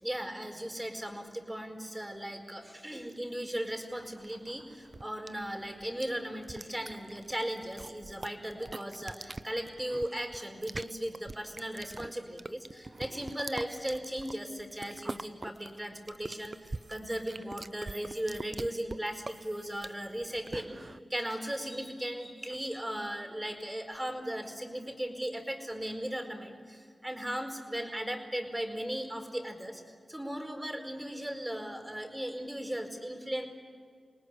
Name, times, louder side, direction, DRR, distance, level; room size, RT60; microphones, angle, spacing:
voice 1, 0.0-16.5 16.9-20.8 21.1-29.8 30.1-33.4, right 1 dB, 15° right, 5 dB, 4.7 m, -37 dB
sound 1, 4.0-21.0, right 3 dB, 45° right, 0.7 m, -44 dB
28.0 x 19.0 x 10.0 m, 2.1 s
cardioid pair, 50°, 0 cm